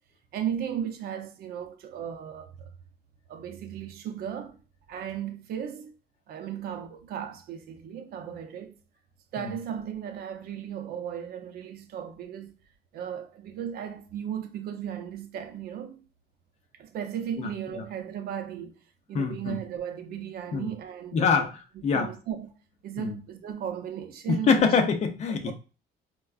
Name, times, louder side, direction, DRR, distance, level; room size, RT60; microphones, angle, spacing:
voice 1, 0.3-2.7 3.3-4.6 4.9-5.9 6.3-8.7 9.3-12.6 12.9-16.0 16.8-18.8 19.1-21.5 21.9-22.5 22.8-24.5 25.5-25.6, right 9 dB, 55° right, 0.6 m, -36 dB
voice 2, 17.4-17.8 19.1-19.6 20.5-20.7 21.1-21.5 21.8-22.1 23.0-23.2 24.3-25.5, left 5 dB, 40° left, 0.6 m, -25 dB
4.4 x 2.2 x 2.3 m
cardioid pair, 160°, 18 cm